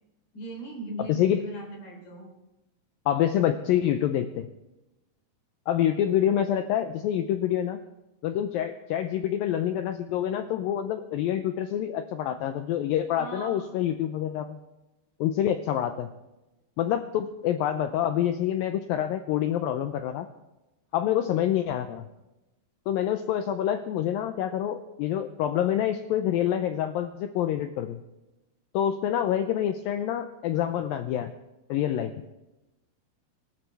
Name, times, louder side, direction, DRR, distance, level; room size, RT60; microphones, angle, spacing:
voice 1, 0.3-2.3 13.2-13.7, right 1 dB, 55° left, 0 dB, 5.4 m, -38 dB
voice 2, 1.0-1.4 3.1-4.5 5.7-7.8 8.2-14.6 15.2-16.1 16.8-20.3 20.9-22.1 22.9-28.0 28.7-31.3 31.7-32.1, left 10 dB, 90° left, 8 dB, 2.0 m, -27 dB
25.5 x 12.5 x 3.4 m, 1.0 s
omnidirectional pair, 4.8 m